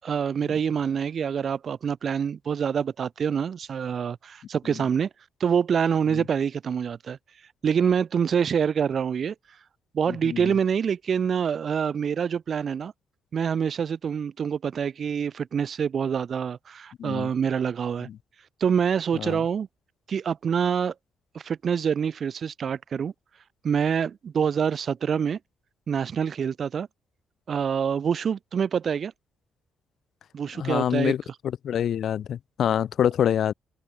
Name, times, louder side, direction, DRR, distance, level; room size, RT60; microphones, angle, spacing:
voice 1, 0.0-5.1 5.4-7.2 7.6-9.3 9.9-12.9 13.3-18.1 18.6-19.7 20.1-20.9 21.3-23.1 23.6-25.4 25.9-26.9 27.5-29.1 30.3-31.1, right 7 dB, 50° right, 5.4 m, -26 dB
voice 2, 30.5-31.2 31.6-33.5, left 9 dB, 65° left, 4.0 m, -25 dB
cardioid pair, 90°, 0 cm